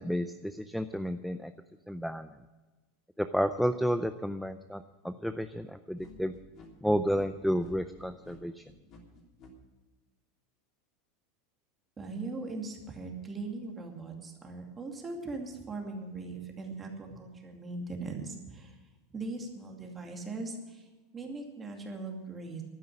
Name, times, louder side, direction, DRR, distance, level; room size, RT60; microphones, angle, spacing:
voice 1, 0.0-1.5 1.9-2.3 3.2-6.3 6.8-8.6, equal, ahead, 10 dB, 0.5 m, -31 dB
sound 1, 6.0-9.5, left 3 dB, 40° left, 3.3 m, -53 dB
voice 2, 12.0-18.7 19.1-20.8 21.1-22.6, right 3 dB, 20° right, 2 dB, 2.5 m, -40 dB
12.0 x 9.4 x 9.9 m, 1.2 s
supercardioid pair, 150°, 0 cm